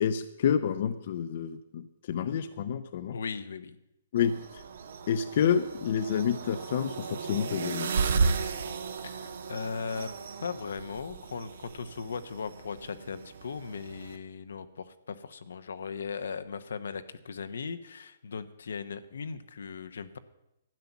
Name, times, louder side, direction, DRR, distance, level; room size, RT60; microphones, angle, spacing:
voice 1, 0.0-3.2 4.1-4.6 5.1-7.9, left 8 dB, 50° left, 11 dB, 0.6 m, -29 dB
voice 2, 3.1-3.8 9.0-10.1 10.4-20.2, left 5 dB, 80° left, 10 dB, 0.9 m, -38 dB
sound 1, 4.2-14.2, right 4 dB, 70° right, 1.2 m, -34 dB
12.0 x 9.5 x 7.2 m, 0.89 s
hypercardioid pair, 155°, 0 cm